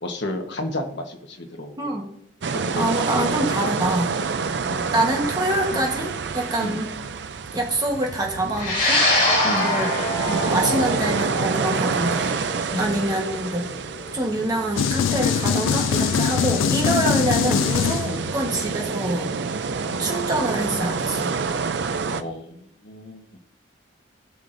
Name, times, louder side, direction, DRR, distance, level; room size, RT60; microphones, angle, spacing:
voice 1, 0.0-1.7 2.6-3.3 4.7-5.0 5.7-5.8 6.6-6.8 9.4-9.8 12.7-13.1 16.3-16.5 18.0-18.2 19.9-20.1 22.1-23.3, left 1 dB, 60° left, 4 dB, 1.2 m, -32 dB
voice 2, 1.8-2.1 2.7-4.1 4.9-6.9 7.5-9.9 10.3-13.7 14.1-19.3 20.0-21.3, right 1 dB, 20° right, 0 dB, 1.2 m, -26 dB
sound 1, 2.4-22.2, right 5 dB, 60° right, 0.5 m, -28 dB
sound 2, 8.6-17.1, left 1 dB, 45° left, 3.8 m, -26 dB
sound 3, 14.8-18.4, left 7 dB, 85° left, 0.3 m, -22 dB
16.0 x 5.9 x 2.6 m, 0.72 s
head